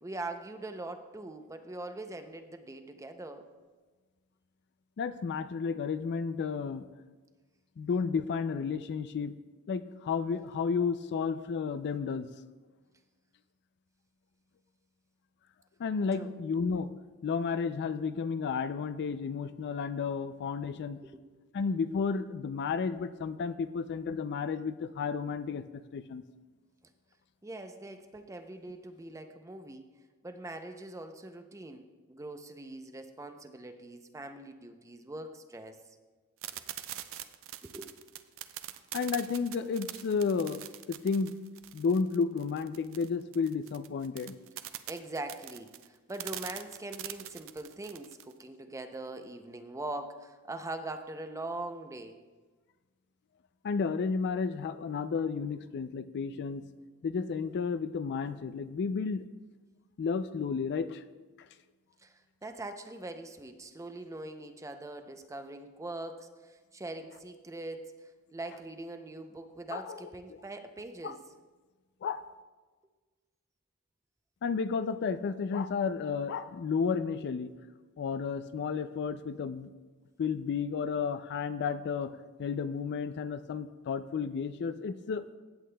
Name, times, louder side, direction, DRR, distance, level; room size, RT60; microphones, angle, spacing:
voice 1, 0.0-3.5 16.1-16.3 21.0-21.2 27.4-29.9 30.2-35.8 37.6-37.9 44.9-52.2 62.0-71.2, right 2 dB, 15° right, 7 dB, 0.5 m, -42 dB
voice 2, 5.0-6.9 7.8-9.4 9.7-12.3 15.8-16.9 17.2-21.0 21.5-26.2 38.9-40.6 40.9-41.4 41.7-44.4 53.6-56.7 57.0-59.2 60.0-61.0 69.7-70.1 71.0-71.2 72.0-72.2 74.4-77.5 78.0-79.7 80.2-85.4, left 5 dB, 50° left, 12 dB, 0.3 m, -32 dB
sound 1, 36.4-48.3, right 12 dB, 65° right, 0.5 m, -43 dB
16.0 x 8.3 x 2.2 m, 1.3 s
head